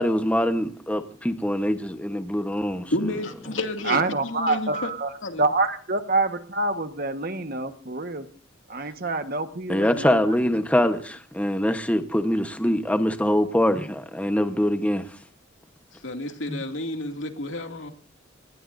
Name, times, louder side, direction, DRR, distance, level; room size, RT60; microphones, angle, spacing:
voice 1, 0.0-2.9 9.7-15.1 16.5-16.6, equal, 5° left, 1.1 m, -24 dB
voice 2, 2.9-4.9 5.2-5.4 16.0-17.9, left 1 dB, 80° left, 2.4 m, -30 dB
voice 3, 3.8-5.1 5.4-8.2 8.7-10.3 12.6-12.7, right 3 dB, 50° right, 1.5 m, -26 dB
28.0 x 19.0 x 2.7 m
head